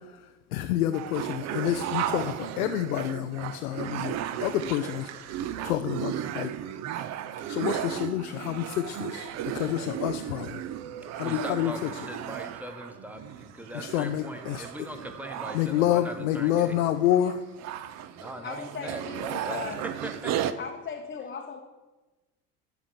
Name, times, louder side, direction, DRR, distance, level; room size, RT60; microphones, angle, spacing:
voice 1, 0.0-6.6 7.5-10.6 11.1-11.9 13.7-14.7 15.5-17.4, left 12 dB, 65° left, 7 dB, 0.6 m, -28 dB
sound 1, 0.9-20.5, right 11 dB, 35° right, 0.6 m, -35 dB
voice 2, 11.2-16.8 18.2-19.7 20.0-20.5, equal, 5° right, 7 dB, 1.1 m, -40 dB
voice 3, 18.4-19.8 20.6-21.6, left 6 dB, 20° left, 1 dB, 0.9 m, -38 dB
12.0 x 5.0 x 7.2 m, 1.1 s
figure-of-eight pair, 65°, 47 cm